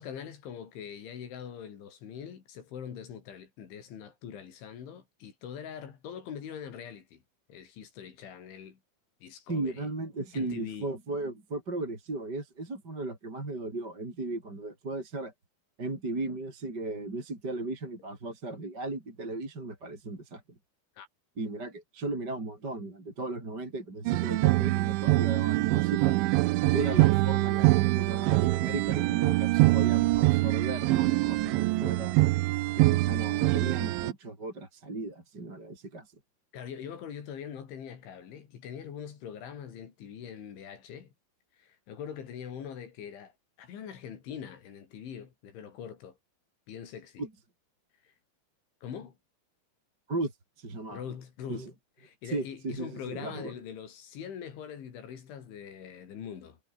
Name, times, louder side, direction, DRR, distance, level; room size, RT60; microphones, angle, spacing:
voice 1, 0.0-7.2 7.5-8.8 9.2-9.9 10.3-10.9 21.0-21.1 26.7-27.0 36.5-41.1 41.6-43.3 43.6-46.2 46.7-47.2 48.0-48.1 48.8-49.2 50.9-51.7 52.0-56.6, left 8 dB, 75° left, 5.9 m, -43 dB
voice 2, 9.5-15.3 15.8-20.4 21.4-26.2 26.7-32.2 32.7-36.2 47.2-47.3 50.1-50.3 50.6-51.0 51.5-51.7 52.2-53.5, right 2 dB, 20° right, 5.3 m, -36 dB
sound 1, 24.1-34.1, right 19 dB, 80° right, 3.1 m, -24 dB
omnidirectional pair, 5.5 m